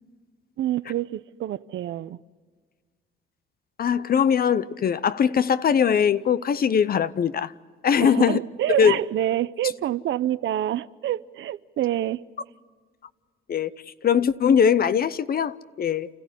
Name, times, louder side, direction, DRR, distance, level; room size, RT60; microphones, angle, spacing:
voice 1, 0.6-2.2 8.0-12.2, right 12 dB, 70° right, 0.7 m, -27 dB
voice 2, 3.8-7.5 7.8-8.4 8.7-9.0 13.5-13.7 14.0-16.1, left 7 dB, 50° left, 0.8 m, -21 dB
29.5 x 14.0 x 9.9 m
cardioid pair, 90°, 20 cm